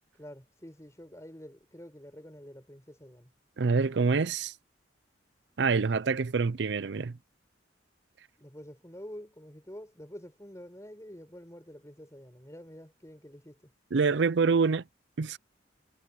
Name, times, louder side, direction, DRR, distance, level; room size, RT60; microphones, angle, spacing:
voice 1, 0.2-3.3 8.4-13.7, equal, 15° left, 7.0 m, -48 dB
voice 2, 3.6-4.5 5.6-7.2 13.9-14.8 15.2-15.4, right 4 dB, 65° right, 0.5 m, -26 dB
head